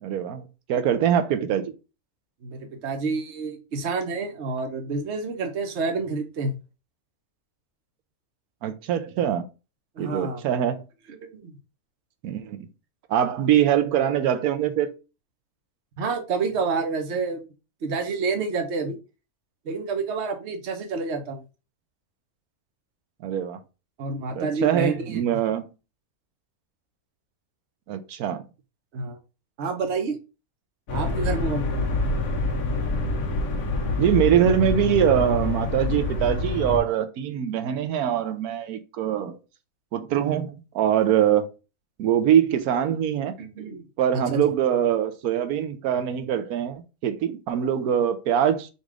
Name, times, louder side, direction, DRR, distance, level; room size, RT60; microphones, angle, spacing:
voice 1, 0.0-1.7 8.6-9.4 10.0-10.8 12.2-12.7 13.1-14.9 23.2-23.6 24.3-25.7 27.9-28.4 34.0-39.4 39.9-41.5 42.0-43.3 44.0-48.7, right 9 dB, 85° right, 1.1 m, -23 dB
voice 2, 2.4-6.6 10.0-10.4 11.1-11.5 16.0-17.4 17.8-19.0 19.6-21.4 24.0-25.2 28.9-29.2 29.6-30.2 30.9-31.9 43.4-43.8 44.3-44.4, right 4 dB, 55° right, 1.1 m, -28 dB
sound 1, 30.9-36.8, left 3 dB, 65° left, 1.3 m, -26 dB
4.1 x 2.5 x 4.7 m
omnidirectional pair, 1.5 m